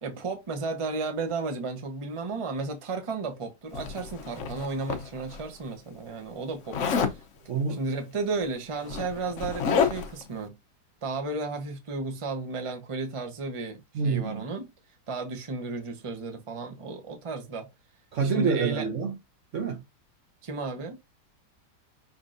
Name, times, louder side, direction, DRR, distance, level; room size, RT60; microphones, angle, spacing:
voice 1, 0.0-6.8 7.7-10.6 11.0-14.7 15.1-17.7 18.2-18.9 20.4-21.0, right 3 dB, 25° right, 0.7 m, -33 dB
Zipper (clothing), 3.7-5.4 6.7-7.2 8.3-8.4 8.7-10.2, left 6 dB, 55° left, 0.9 m, -29 dB
voice 2, 7.5-7.8 13.9-14.4 18.1-19.2 19.5-19.8, right 5 dB, 55° right, 0.9 m, -27 dB
5.7 x 3.4 x 2.5 m
omnidirectional pair, 1.8 m